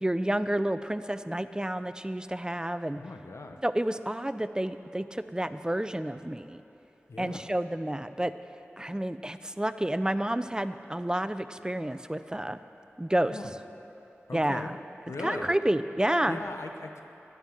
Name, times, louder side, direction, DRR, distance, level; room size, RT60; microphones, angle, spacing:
voice 1, 0.0-3.0 3.6-6.6 7.2-8.3 8.8-12.6 13.0-13.4 14.3-14.8 15.2-16.4, right 1 dB, 15° right, 12 dB, 0.4 m, -30 dB
voice 2, 3.0-3.6 7.1-7.5 13.3-13.5 14.3-14.8 15.1-15.5 16.2-17.0, left 3 dB, 85° left, 5 dB, 0.9 m, -39 dB
12.0 x 9.1 x 7.3 m, 2.9 s
wide cardioid pair, 45°, 5 cm